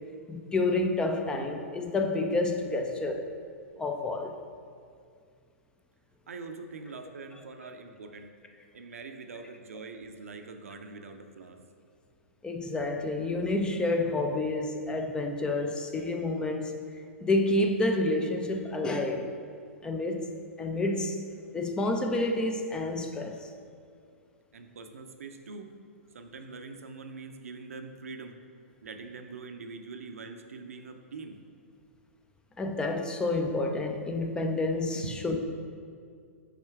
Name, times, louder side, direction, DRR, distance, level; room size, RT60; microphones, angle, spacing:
voice 1, 0.3-3.3 3.8-4.3 9.4-9.5 12.4-16.8 17.2-19.3 19.8-20.3 20.6-21.2 21.5-23.5 32.6-35.4, left 2 dB, 10° left, 5 dB, 0.4 m, -29 dB
voice 2, 6.3-8.3 8.7-11.6 24.5-25.7 26.1-28.4 28.8-31.4 35.0-35.4, right 4 dB, 70° right, 6 dB, 0.6 m, -43 dB
5.8 x 4.3 x 4.6 m, 2.3 s
figure-of-eight pair, 115°, 8 cm